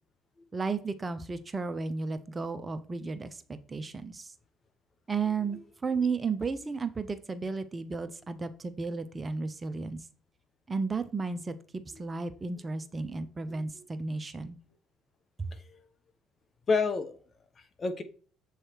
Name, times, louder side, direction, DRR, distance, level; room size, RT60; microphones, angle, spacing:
voice 1, 0.5-4.3 5.1-10.0 10.7-11.5 12.0-14.6 15.4-15.5, right 4 dB, 25° right, 11 dB, 0.7 m, -33 dB
voice 2, 13.5-13.8 15.5-15.9 16.7-17.2 17.6-18.0, left 4 dB, 40° left, 9 dB, 1.0 m, -31 dB
7.5 x 3.3 x 4.5 m, 0.41 s
hypercardioid pair, 65°, 0 cm